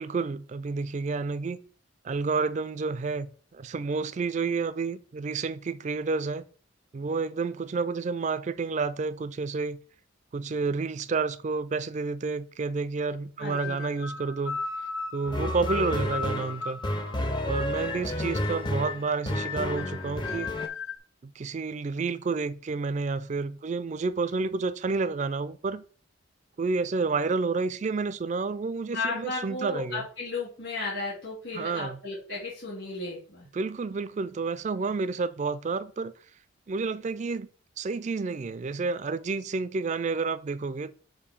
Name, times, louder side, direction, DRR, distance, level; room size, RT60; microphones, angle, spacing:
voice 1, 0.0-1.6 2.0-6.5 6.9-9.8 10.3-14.6 15.1-16.8 17.5-20.5 21.2-25.8 26.6-30.0 31.5-32.0 33.5-36.1 36.7-37.5 37.8-40.9, right 4 dB, 35° right, 0.3 m, -30 dB
sound 1, 13.4-21.0, left 5 dB, 85° left, 0.7 m, -37 dB
voice 2, 13.4-13.8 28.9-33.5, left 3 dB, 60° left, 3.0 m, -34 dB
sound 2, 15.3-20.7, left 1 dB, 20° left, 0.5 m, -31 dB
6.7 x 2.7 x 5.3 m
head